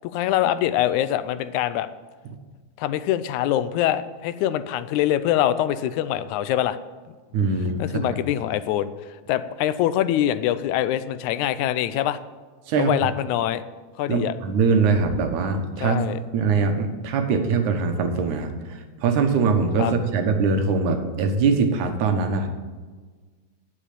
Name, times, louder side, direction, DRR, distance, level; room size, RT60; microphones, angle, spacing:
voice 1, 0.0-1.9 2.8-6.8 7.8-8.9 9.3-12.2 12.8-13.6 14.0-14.4 15.8-16.2 19.8-19.9, left 12 dB, 85° left, 14 dB, 2.0 m, -24 dB
voice 2, 7.3-7.8 8.1-8.2 12.7-12.9 14.1-16.0 16.3-22.5, right 4 dB, 85° right, 6 dB, 2.7 m, -22 dB
10.0 x 7.4 x 8.4 m, 1.4 s
omnidirectional pair, 3.3 m